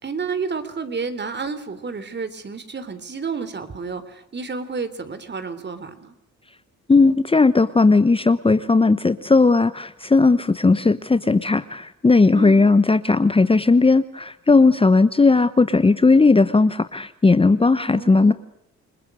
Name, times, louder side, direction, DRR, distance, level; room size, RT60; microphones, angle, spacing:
voice 1, 0.0-6.1 12.3-12.7 17.8-18.3, right 4 dB, 35° right, 12 dB, 3.4 m, -30 dB
voice 2, 6.9-18.3, left 3 dB, 20° left, 12 dB, 1.1 m, -16 dB
29.0 x 20.5 x 6.4 m, 0.76 s
cardioid pair, 90°, 30 cm